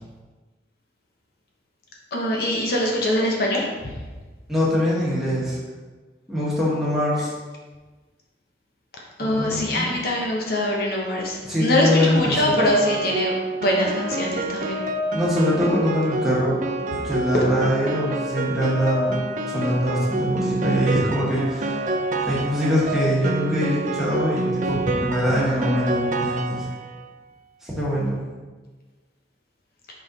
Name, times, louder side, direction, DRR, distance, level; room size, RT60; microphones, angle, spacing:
voice 1, 2.1-3.7 9.2-14.8 17.3-17.4, left 1 dB, 55° left, -2 dB, 0.9 m, -23 dB
voice 2, 4.5-5.6 6.3-7.3 9.2-10.0 11.4-12.6 15.1-16.6 16.9-19.2 19.5-21.8 22.2-26.6 27.6-28.2, equal, ahead, -8 dB, 1.6 m, -23 dB
Piano, 12.6-27.0, right 2 dB, 45° right, 0.5 m, -27 dB
5.3 x 4.4 x 4.0 m, 1.3 s
head